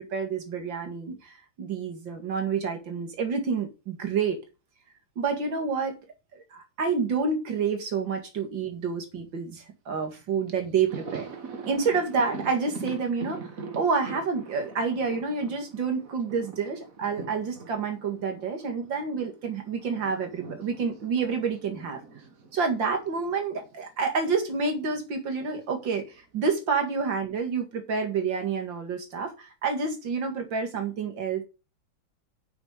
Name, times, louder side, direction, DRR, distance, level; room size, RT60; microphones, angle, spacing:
voice 1, 0.0-4.4 5.2-6.0 6.3-11.3 11.7-13.5 13.8-22.0 22.5-31.4, right 5 dB, 65° right, 2.7 m, -28 dB
Thunder, 10.1-10.2 10.5-19.3 19.6-23.9 24.1-24.3 25.5-26.2, right 4 dB, 45° right, 1.7 m, -43 dB
9.3 x 6.0 x 5.1 m
omnidirectional pair, 2.2 m